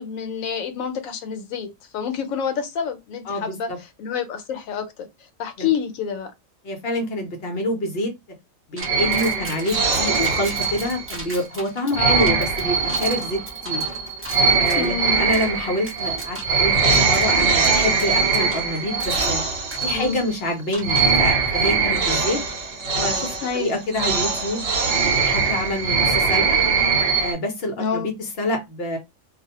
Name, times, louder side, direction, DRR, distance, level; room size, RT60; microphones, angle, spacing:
voice 1, 0.0-3.7 4.0-5.1 5.4-6.3 11.9-12.4 14.8-15.2 19.9-20.2 23.4-23.8 27.8-28.1, left 7 dB, 85° left, 1.0 m, -28 dB
voice 2, 3.3-3.6 5.6-5.7 6.6-8.1 8.7-13.8 14.6-19.4 19.8-22.4 22.9-26.6 27.2-29.0, left 1 dB, 55° left, 0.8 m, -27 dB
sound 1, 8.8-14.9 15.3-15.5 15.9-16.6 16.9-17.2 17.6-19.4 19.7-19.9 20.7-21.2, right 1 dB, 15° right, 0.5 m, -37 dB
sound 2, 8.8-11.3 11.9-20.5 20.8-27.3, right 5 dB, 60° right, 0.8 m, -22 dB
2.4 x 2.1 x 2.8 m
omnidirectional pair, 1.4 m